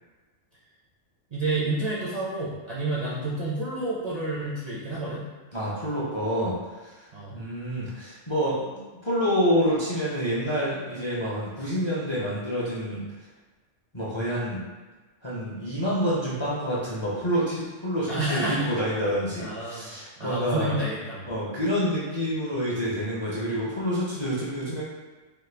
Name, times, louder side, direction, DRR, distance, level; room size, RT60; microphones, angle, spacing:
voice 1, 1.3-5.3 7.1-7.3 18.1-18.7 19.4-19.9 20.2-21.3, right 2 dB, 45° right, -8 dB, 0.5 m, -29 dB
voice 2, 5.5-6.5 6.8-6.9 7.3-8.8 9.0-13.0 13.9-14.6 15.2-20.8 21.3-24.8, equal, 30° left, -8 dB, 0.5 m, -27 dB
3.0 x 2.2 x 3.3 m, 1.3 s
omnidirectional pair, 1.2 m